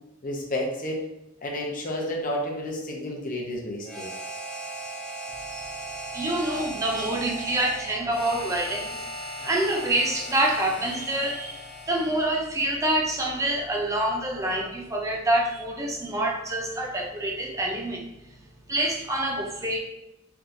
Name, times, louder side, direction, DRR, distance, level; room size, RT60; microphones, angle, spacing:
voice 1, 0.2-1.0 1.4-4.1 9.4-9.5, left 1 dB, 40° left, -1 dB, 0.7 m, -31 dB
Harmonica, 3.8-12.5, right 1 dB, 5° left, 0.8 m, -37 dB
voice 2, 6.1-9.0 9.4-18.0 18.7-19.8, right 1 dB, 15° right, 0 dB, 0.4 m, -26 dB
3.4 x 2.8 x 2.5 m, 0.89 s
head